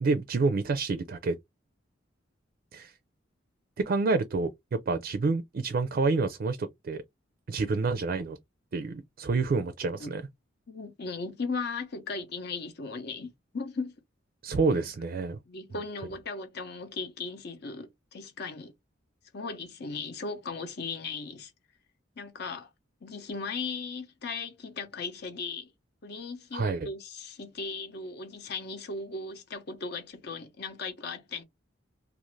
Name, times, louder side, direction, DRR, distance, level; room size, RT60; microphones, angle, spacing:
voice 1, 0.0-1.4 2.7-2.9 3.9-7.0 7.5-8.4 8.7-10.2 14.4-15.4 26.5-26.9, right 3 dB, 50° right, 0.4 m, -28 dB
voice 2, 10.7-13.9 14.7-14.9 15.5-18.7 19.3-21.5 22.2-22.7 23.0-25.7 26.0-31.4, left 4 dB, 60° left, 0.7 m, -37 dB
2.5 x 2.4 x 3.0 m
head